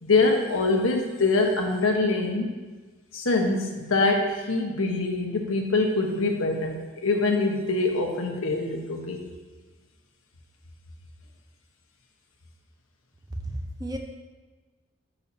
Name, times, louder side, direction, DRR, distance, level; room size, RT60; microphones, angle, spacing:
voice 1, 0.0-2.5 3.1-9.2, left 3 dB, 85° left, 1 dB, 1.3 m, -24 dB
voice 2, 13.4-14.0, right 1 dB, 20° right, 3 dB, 0.6 m, -33 dB
13.0 x 5.6 x 2.8 m, 1.3 s
head